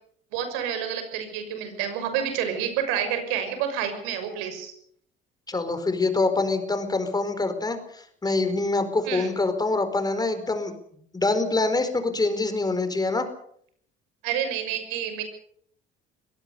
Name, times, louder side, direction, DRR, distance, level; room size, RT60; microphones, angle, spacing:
voice 1, 0.3-4.7 9.0-9.3 14.2-15.2, right 9 dB, 90° right, 8 dB, 6.4 m, -29 dB
voice 2, 5.5-10.7 11.1-13.3, left 3 dB, 20° left, 9 dB, 4.6 m, -25 dB
23.0 x 18.0 x 6.9 m, 0.65 s
supercardioid pair, 90°, 20 cm